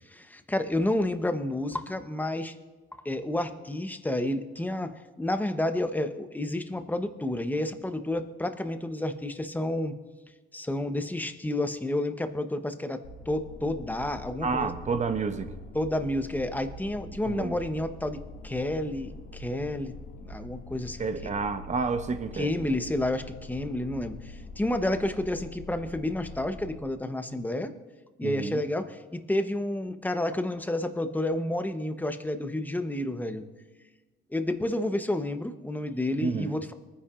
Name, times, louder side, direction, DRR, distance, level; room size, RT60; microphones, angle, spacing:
voice 1, 0.1-2.5 3.0-10.0 10.5-14.7 15.7-21.3 22.3-27.7 28.2-33.4 34.3-36.7, left 1 dB, 10° left, 8 dB, 0.9 m, -30 dB
sound 1, 13.0-26.7, left 2 dB, 85° left, 2.1 m, -44 dB
voice 2, 14.4-15.5 17.2-17.6 21.0-22.7 28.2-28.6 36.2-36.6, right 4 dB, 35° right, 9 dB, 0.9 m, -30 dB
23.0 x 9.9 x 2.5 m, 1.3 s
cardioid pair, 90°, 20 cm